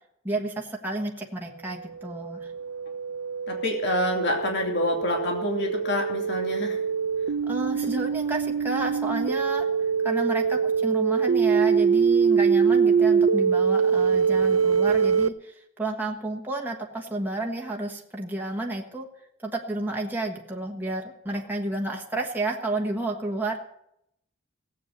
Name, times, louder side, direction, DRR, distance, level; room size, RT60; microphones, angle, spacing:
voice 1, 0.2-2.5 7.4-19.1 19.4-23.6, right 2 dB, 10° right, -1 dB, 1.4 m, -31 dB
sound 1, 2.0-15.3, right 6 dB, 80° right, 0.6 m, -24 dB
voice 2, 3.5-6.8, left 1 dB, 55° left, 1 dB, 2.7 m, -27 dB
16.5 x 8.3 x 8.0 m, 0.76 s
head